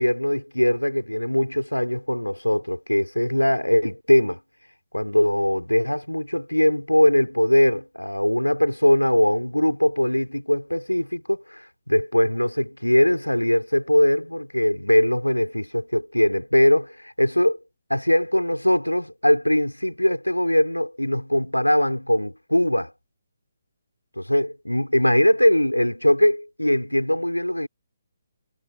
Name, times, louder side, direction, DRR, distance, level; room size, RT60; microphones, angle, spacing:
voice 1, 0.0-4.4 4.9-17.6 17.9-22.9 24.2-27.7, left 1 dB, 85° left, 4.0 m, -21 dB
figure-of-eight pair, 140°, 0 cm